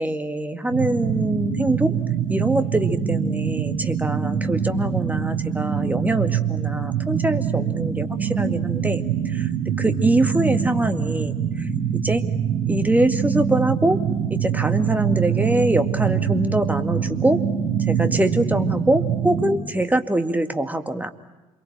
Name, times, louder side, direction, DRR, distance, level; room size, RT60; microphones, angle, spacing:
voice 1, 0.0-1.9 2.3-9.0 9.3-12.2 12.7-14.0 14.3-17.4 17.9-21.1, right 1 dB, 10° right, 8 dB, 2.0 m, -23 dB
sound 1, 0.7-19.5, right 8 dB, 65° right, 6.2 m, -24 dB
28.0 x 23.0 x 8.9 m, 1.1 s
figure-of-eight pair, 50°, 16 cm